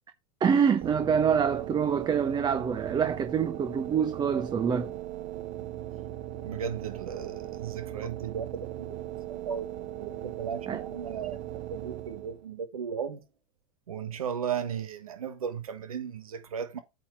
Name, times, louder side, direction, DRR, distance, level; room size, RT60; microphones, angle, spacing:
voice 1, 0.4-5.0 10.7-10.8, right 7 dB, 25° right, 0.9 m, -26 dB
sound 1, 0.8-12.5, right 14 dB, 50° right, 0.9 m, -38 dB
voice 2, 6.4-9.0 9.3-9.7 10.0-13.2 13.9-16.8, right 7 dB, 85° right, 1.3 m, -36 dB
8.7 x 4.4 x 4.5 m
hypercardioid pair, 100°, 18 cm